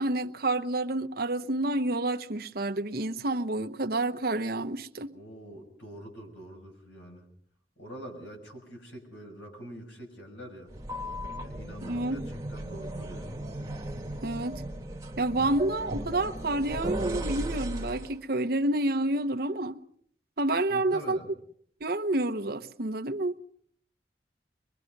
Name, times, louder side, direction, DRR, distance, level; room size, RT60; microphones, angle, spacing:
voice 1, 0.0-5.1 11.8-12.2 14.2-14.6 15.2-19.8 20.4-21.2 21.8-23.3, right 2 dB, 55° right, 1.0 m, -29 dB
voice 2, 5.1-7.2 7.8-10.7 11.4-13.4 20.7-21.3, equal, 90° left, 6.5 m, -45 dB
sound 1, 10.7-18.2, right 1 dB, 20° right, 1.7 m, -36 dB
24.0 x 22.0 x 5.3 m
head